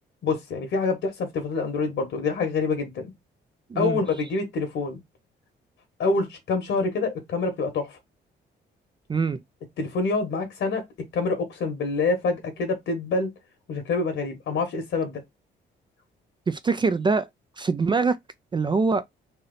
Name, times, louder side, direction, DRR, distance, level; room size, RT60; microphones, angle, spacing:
voice 1, 0.2-3.1 3.7-5.0 6.0-8.0 9.8-10.8 11.1-13.3 13.7-15.2, left 3 dB, 75° left, 1.3 m, -26 dB
voice 2, 3.7-4.0 9.1-9.4 16.5-17.3 17.6-18.2 18.5-19.0, right 4 dB, 25° right, 0.3 m, -23 dB
3.3 x 2.8 x 3.8 m
cardioid pair, 90°, 20 cm